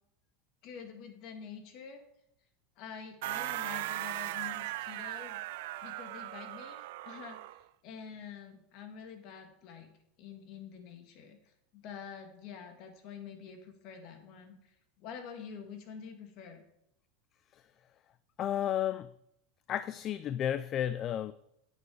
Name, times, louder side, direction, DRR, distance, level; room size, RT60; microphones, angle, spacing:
voice 1, 0.6-2.0 2.8-5.4 5.8-7.4 7.8-9.9 10.2-11.4 11.7-14.5 15.0-16.6, left 7 dB, 50° left, 2.1 m, -47 dB
sound 1, 3.2-7.6, right 16 dB, 70° right, 0.4 m, -38 dB
voice 2, 18.4-19.1 19.7-21.3, left 10 dB, 35° left, 0.4 m, -32 dB
9.8 x 8.1 x 4.8 m
supercardioid pair, 140°, 0 cm